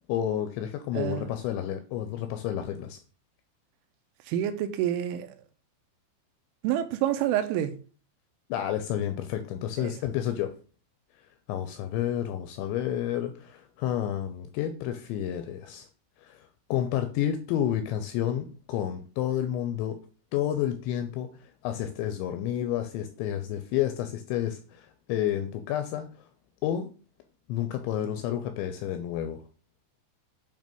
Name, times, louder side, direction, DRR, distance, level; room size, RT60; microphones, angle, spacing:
voice 1, 0.1-3.0 8.5-10.5 11.5-15.9 16.2-20.0 20.3-26.1 26.6-26.9 27.5-29.4, left 11 dB, 85° left, 2.6 m, -30 dB
voice 2, 0.9-1.3 4.2-5.4 6.6-7.7 9.8-9.9, right 11 dB, 80° right, 3.0 m, -28 dB
9.0 x 3.1 x 5.2 m
omnidirectional pair, 5.7 m